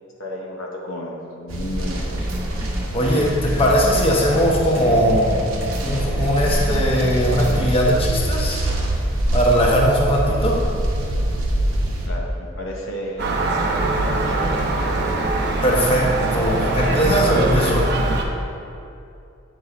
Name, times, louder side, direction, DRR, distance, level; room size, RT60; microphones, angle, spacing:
voice 1, 0.2-2.3 12.1-15.3, left 1 dB, 70° left, -2 dB, 0.7 m, -33 dB
sound 1, 1.5-12.1, right 1 dB, 85° right, 0.9 m, -24 dB
sound 2, 1.9-7.7, equal, 10° right, 0.7 m, -33 dB
voice 2, 2.9-5.3 5.8-8.6 9.3-10.6 15.6-17.9, equal, 30° left, -3 dB, 0.9 m, -19 dB
Gull seagull, 13.2-18.2, right 2 dB, 55° right, 0.6 m, -22 dB
8.2 x 6.1 x 2.5 m, 2.6 s
head